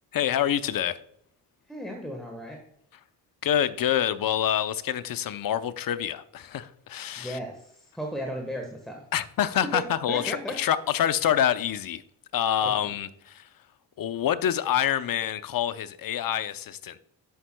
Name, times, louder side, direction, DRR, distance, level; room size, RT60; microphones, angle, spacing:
voice 1, 0.1-1.0 3.4-7.4 9.1-12.0 12.3-13.5 14.0-17.0, left 10 dB, 45° left, 0.6 m, -26 dB
voice 2, 1.7-2.6 7.2-9.0 9.6-10.6 12.6-12.9, equal, ahead, 1.3 m, -35 dB
12.5 x 5.5 x 2.2 m
hypercardioid pair, 50°, 48 cm